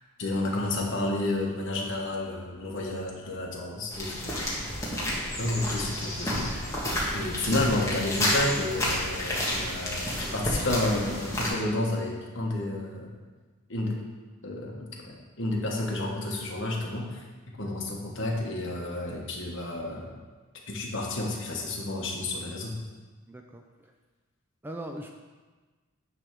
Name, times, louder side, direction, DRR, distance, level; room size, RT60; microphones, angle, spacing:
voice 1, 0.2-4.5 5.3-6.7 7.1-13.1 13.7-13.9 14.4-17.2 17.6-20.1 20.7-22.7, left 2 dB, 55° left, -1 dB, 1.4 m, -31 dB
sound 1, 3.9-11.5, left 1 dB, 15° left, 1.4 m, -30 dB
voice 2, 23.3-23.9 24.6-25.1, right 1 dB, 10° right, 3 dB, 0.3 m, -40 dB
9.9 x 3.4 x 6.0 m, 1.3 s
head